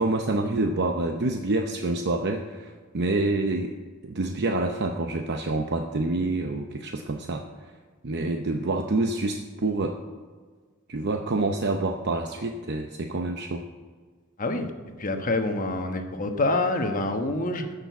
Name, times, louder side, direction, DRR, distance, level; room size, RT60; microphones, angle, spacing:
voice 1, 0.0-3.8 4.0-7.7 8.0-9.9 10.9-13.7, right 2 dB, 50° right, 4 dB, 0.7 m, -27 dB
voice 2, 14.4-14.7 15.0-17.7, left 2 dB, 40° left, 5 dB, 1.2 m, -26 dB
14.0 x 6.8 x 8.3 m, 1.5 s
head